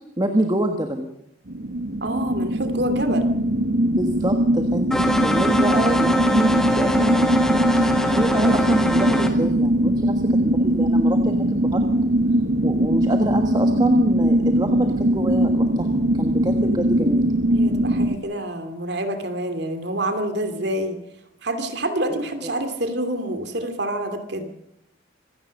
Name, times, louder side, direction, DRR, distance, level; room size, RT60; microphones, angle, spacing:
voice 1, 0.2-1.1 3.9-11.9 12.6-17.3 22.1-22.5, right 1 dB, 20° right, 5 dB, 1.4 m, -26 dB
sound 1, 1.5-18.2, right 1 dB, 75° right, 1.4 m, -21 dB
voice 2, 2.0-3.3 17.5-21.0 21.4-24.5, right 1 dB, 60° right, 7 dB, 2.7 m, -27 dB
sound 2, 4.9-9.3, left 1 dB, 5° left, 1.9 m, -23 dB
25.5 x 17.0 x 6.5 m, 0.77 s
head